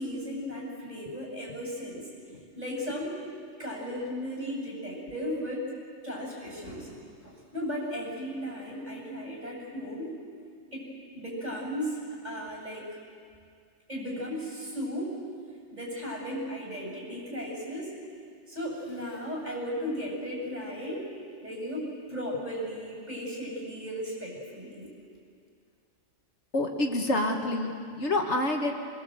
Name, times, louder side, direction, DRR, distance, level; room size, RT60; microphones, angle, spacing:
voice 1, 0.0-2.0 2.6-3.2 3.6-5.6 6.0-10.1 10.7-13.0 13.9-15.2 15.7-17.9 18.5-21.1 21.4-24.9, equal, 35° right, -2 dB, 7.7 m, -36 dB
voice 2, 26.5-28.8, left 1 dB, 65° left, 2 dB, 2.0 m, -27 dB
24.0 x 22.0 x 7.9 m, 2.2 s
omnidirectional pair, 1.3 m